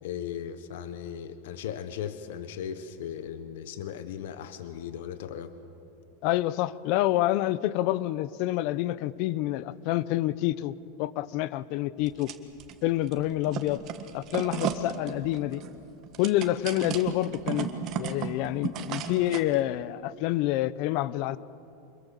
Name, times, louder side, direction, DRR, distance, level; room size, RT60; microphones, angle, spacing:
voice 1, 0.0-5.5, left 9 dB, 75° left, 11 dB, 1.2 m, -37 dB
voice 2, 6.2-12.3 12.8-13.8 14.1-15.6 16.2-17.7 17.9-21.4, left 15 dB, 50° left, 18 dB, 0.7 m, -27 dB
sound 1, 12.0-12.7 13.1-19.6, right 8 dB, 40° right, 1.6 m, -35 dB
26.0 x 21.5 x 7.0 m, 2.7 s
supercardioid pair, 150°, 0 cm